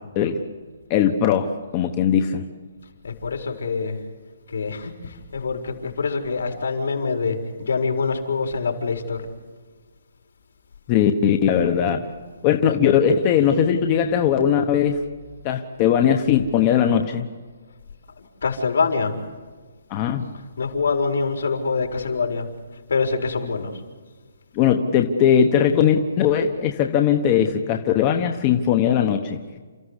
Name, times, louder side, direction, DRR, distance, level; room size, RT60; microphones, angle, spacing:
voice 1, 0.9-2.5 10.9-12.0 12.4-15.0 15.4-17.2 19.9-20.2 24.5-29.4, left 8 dB, 20° left, 5 dB, 1.0 m, -19 dB
voice 2, 3.0-4.0 4.5-9.3 18.2-19.2 20.6-22.5 22.9-23.7, left 4 dB, 70° left, 4 dB, 4.6 m, -25 dB
29.5 x 14.5 x 8.2 m, 1.5 s
hypercardioid pair, 175°, 0 cm